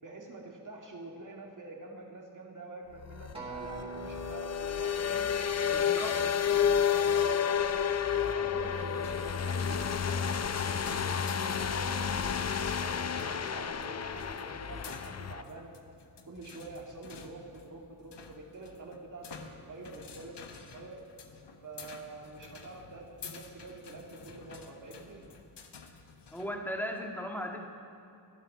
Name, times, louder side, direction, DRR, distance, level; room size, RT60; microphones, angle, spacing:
voice 1, 0.0-5.3 5.7-7.7 8.1-15.7 16.3-21.0 21.6-25.2, right 2 dB, 45° right, 0 dB, 2.4 m, -46 dB
sound 1, 3.0-15.4, left 7 dB, 40° left, 0.6 m, -30 dB
Acoustic guitar, 3.3-7.8 8.4-8.5, right 2 dB, 15° right, 3.1 m, -46 dB
voice 2, 5.7-6.2 26.3-27.6, equal, 5° left, 1 dB, 1.9 m, -37 dB
sound 2, 9.0-26.5, left 5 dB, 80° left, 1.2 m, -51 dB
15.5 x 10.5 x 6.1 m, 2.6 s
wide cardioid pair, 80°, 41 cm